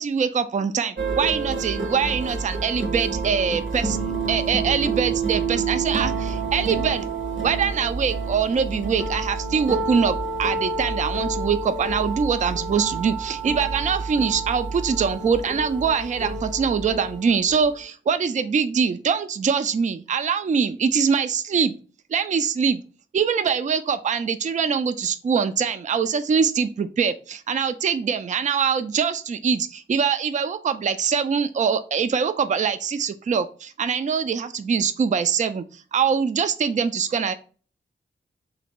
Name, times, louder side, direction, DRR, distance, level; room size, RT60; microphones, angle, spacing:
voice 1, 0.0-7.1 7.4-21.8 22.1-22.8 23.1-37.3, right 6 dB, 40° right, 11 dB, 0.4 m, -23 dB
sound 1, 1.0-17.8, right 4 dB, 70° right, 1.1 m, -29 dB
2.8 x 2.6 x 4.1 m, 0.38 s
cardioid pair, 45°, 20 cm